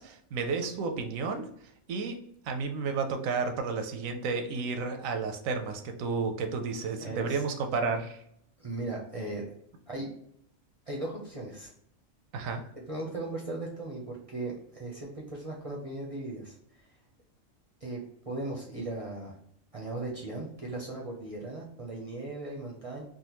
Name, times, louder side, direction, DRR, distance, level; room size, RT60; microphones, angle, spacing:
voice 1, 0.0-1.5 1.9-2.2 2.4-8.2 12.3-12.6, right 4 dB, 85° right, 5 dB, 1.0 m, -32 dB
voice 2, 7.0-7.4 8.6-9.4 9.9-10.1 10.9-11.7 12.9-16.9 17.8-19.3 19.7-23.0, right 2 dB, 35° right, -2 dB, 0.6 m, -37 dB
3.7 x 2.2 x 2.9 m, 0.71 s
omnidirectional pair, 1.4 m